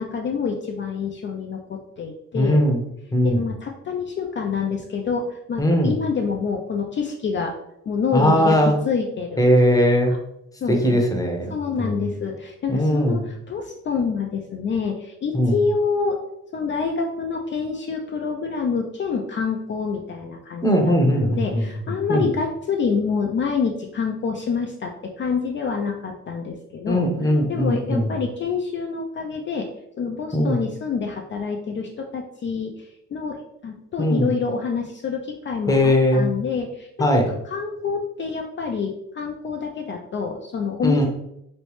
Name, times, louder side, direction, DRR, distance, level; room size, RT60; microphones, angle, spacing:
voice 1, 0.0-2.6 3.2-7.5 7.9-9.5 10.0-10.2 10.6-11.0 11.5-16.2 16.5-27.1 27.5-29.7 30.0-37.1 37.4-41.1, left 5 dB, 40° left, 1 dB, 0.4 m, -27 dB
voice 2, 2.3-2.8 3.1-3.4 5.6-5.9 8.1-8.8 9.4-10.1 10.7-12.0 12.7-13.2 15.3-15.6 20.6-21.7 22.1-22.2 26.9-28.1 30.3-30.6 34.0-34.3 35.7-36.3 37.0-37.3 40.8-41.1, equal, 10° left, 2 dB, 0.8 m, -19 dB
3.1 x 3.0 x 3.1 m, 0.81 s
cardioid pair, 90°, 30 cm